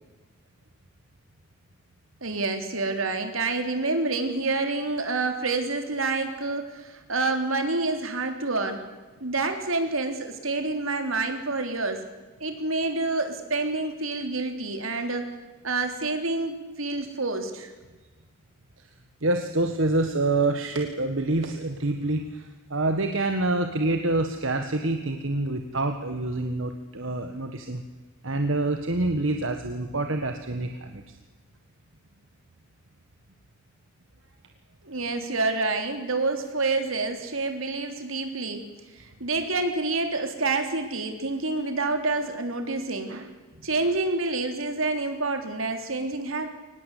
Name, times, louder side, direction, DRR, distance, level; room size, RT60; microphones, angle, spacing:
voice 1, 2.2-8.8 9.2-12.0 12.4-15.3 15.6-17.7 34.8-38.7 39.0-43.3 43.6-46.5, right 3 dB, 85° right, 6 dB, 3.5 m, -28 dB
voice 2, 19.2-27.8 28.2-31.2, right 2 dB, 70° right, 6 dB, 1.6 m, -27 dB
23.5 x 19.5 x 8.5 m, 1.3 s
head